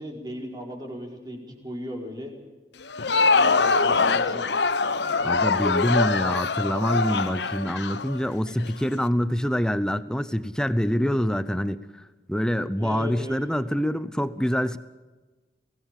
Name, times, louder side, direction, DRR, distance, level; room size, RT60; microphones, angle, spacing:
voice 1, 0.0-2.3 3.4-4.5 12.8-13.4, left 1 dB, 20° right, 1 dB, 4.6 m, -36 dB
Crowd, 2.8-8.7, left 4 dB, 70° left, 1.1 m, -23 dB
voice 2, 5.2-11.8 12.3-14.8, equal, 5° left, 13 dB, 0.7 m, -25 dB
23.5 x 18.0 x 7.5 m, 1.2 s
head